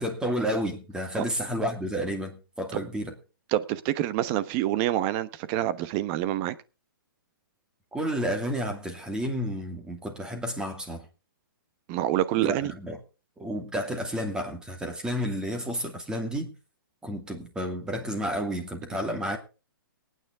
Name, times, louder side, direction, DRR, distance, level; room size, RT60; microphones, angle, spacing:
voice 1, 0.0-3.1 7.9-11.0 12.4-13.0 13.4-16.5 17.0-19.4, equal, 5° right, 2.4 m, -31 dB
voice 2, 3.5-6.5 11.9-12.7, right 13 dB, 30° right, 1.0 m, -27 dB
20.5 x 9.4 x 3.5 m
hypercardioid pair, 145°, 12 cm